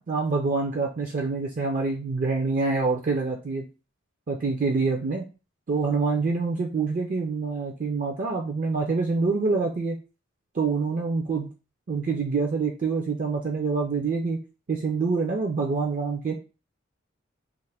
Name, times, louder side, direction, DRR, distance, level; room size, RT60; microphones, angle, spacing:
voice 1, 0.0-3.7 4.3-5.2 5.7-10.0 10.5-11.5 11.9-14.4 14.7-16.3, right 4 dB, 40° right, 2 dB, 0.4 m, -26 dB
2.5 x 2.5 x 3.3 m, 0.31 s
head